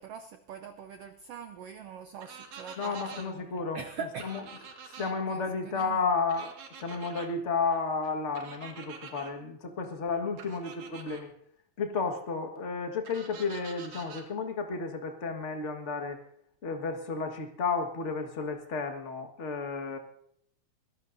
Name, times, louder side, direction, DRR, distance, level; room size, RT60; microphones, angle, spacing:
voice 1, 0.0-3.2 3.5-4.3 5.0-6.0, right 6 dB, 90° right, 7 dB, 1.3 m, -43 dB
sound 1, 2.2-3.3 4.2-5.1 6.3-7.3 8.4-9.3 10.4-11.2 13.1-14.3, right 6 dB, 70° right, 3.2 m, -46 dB
voice 2, 2.8-3.8 4.2-4.4 4.9-11.3 11.8-16.2 16.6-20.0, left 4 dB, 40° left, 4 dB, 1.1 m, -32 dB
23.5 x 17.0 x 2.7 m, 0.69 s
omnidirectional pair, 3.8 m